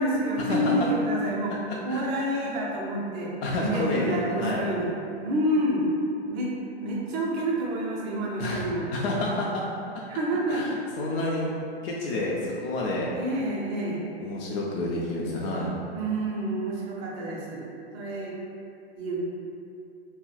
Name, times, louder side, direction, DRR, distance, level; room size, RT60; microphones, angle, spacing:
voice 1, 0.0-1.6 1.8-4.9 5.2-5.8 6.3-6.5 6.8-8.9 10.1-10.6 13.2-14.1 15.9-18.3 18.9-19.2, right 1 dB, 30° right, -3 dB, 0.5 m, -28 dB
voice 2, 1.5-2.1 3.4-4.7 8.4-8.6 8.9-9.6 10.5-11.5 11.8-13.1 14.2-15.7, left 2 dB, 65° left, -4 dB, 0.5 m, -29 dB
2.3 x 2.1 x 3.9 m, 2.6 s
hypercardioid pair, 140°, 32 cm